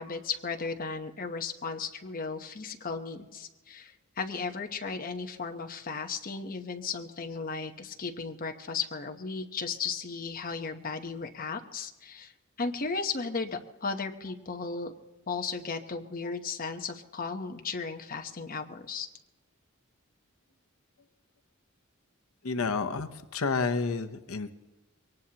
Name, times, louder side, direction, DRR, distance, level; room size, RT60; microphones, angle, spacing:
voice 1, 0.0-12.3 12.6-14.9 15.3-19.1, left 4 dB, 40° left, 4 dB, 1.0 m, -35 dB
voice 2, 22.4-24.5, left 4 dB, 85° left, 9 dB, 0.8 m, -30 dB
23.0 x 18.5 x 2.9 m, 1.1 s
head